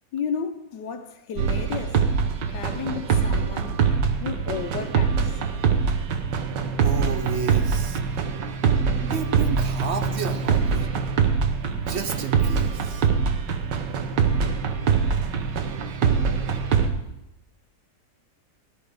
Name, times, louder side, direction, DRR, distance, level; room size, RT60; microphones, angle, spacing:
voice 1, 0.1-2.0 2.5-3.8 4.2-5.4, left 7 dB, 90° left, 1.5 m, -33 dB
sound 1, 1.4-16.9, right 6 dB, 85° right, 1.6 m, -23 dB
voice 2, 6.8-8.0 9.0-10.9 11.7-13.1, right 6 dB, 55° right, 0.8 m, -31 dB
16.5 x 10.5 x 3.6 m
omnidirectional pair, 1.9 m